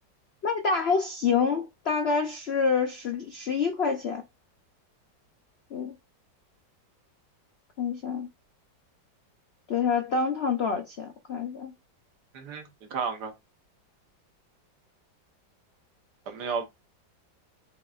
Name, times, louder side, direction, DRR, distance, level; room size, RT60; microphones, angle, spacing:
voice 1, 0.4-4.2 5.7-5.9 7.8-8.3 9.7-11.7, left 5 dB, 85° left, 0.5 m, -27 dB
voice 2, 12.3-13.3 16.3-16.7, right 5 dB, 65° right, 1.4 m, -33 dB
6.7 x 2.9 x 2.4 m
omnidirectional pair, 2.0 m